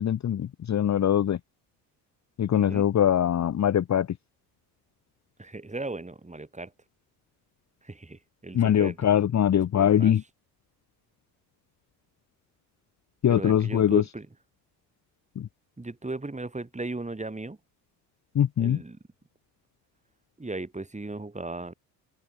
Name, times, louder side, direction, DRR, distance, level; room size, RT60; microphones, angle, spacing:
voice 1, 0.0-1.4 2.4-4.1 8.5-10.2 13.2-14.0 15.4-15.5 18.3-18.8, left 10 dB, 35° left, 1.1 m, -22 dB
voice 2, 2.5-2.9 5.4-6.7 7.8-9.0 9.7-10.1 13.3-14.3 15.8-17.6 18.6-19.0 20.4-21.7, right 2 dB, 15° right, 6.0 m, -37 dB
open air
hypercardioid pair, 60°, 50 cm